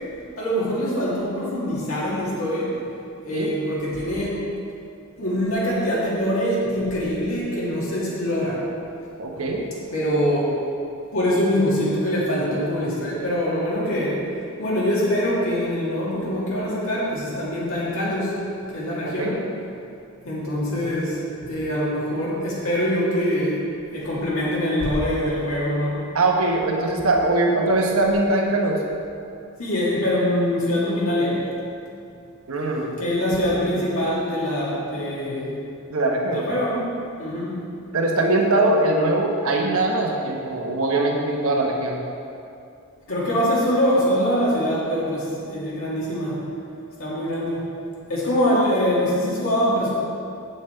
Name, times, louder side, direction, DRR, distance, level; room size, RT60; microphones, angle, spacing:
voice 1, 0.4-2.8 3.2-4.4 5.2-8.7 9.3-9.4 9.9-10.6 11.1-14.2 14.6-18.3 18.7-19.4 20.2-23.6 23.9-26.0 29.6-31.4 33.0-35.6 36.3-36.9 37.2-37.6 43.1-46.4 47.0-47.7 48.1-49.9, equal, 80° left, -7 dB, 2.2 m, -24 dB
voice 2, 9.2-9.7 19.2-19.3 26.1-28.8 32.5-32.9 35.9-36.5 37.9-42.0, right 2 dB, 85° right, 0 dB, 1.2 m, -21 dB
7.9 x 7.7 x 4.5 m, 2.5 s
head